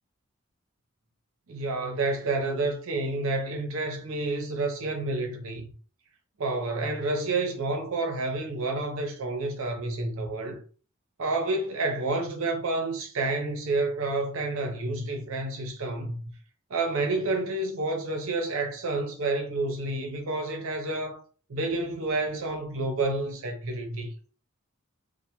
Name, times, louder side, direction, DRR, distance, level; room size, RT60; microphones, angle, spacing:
voice 1, 1.5-5.7 6.4-10.6 11.2-16.2 16.7-21.2 21.5-24.1, right 2 dB, 70° right, 0.6 m, -29 dB
2.1 x 2.1 x 2.8 m
head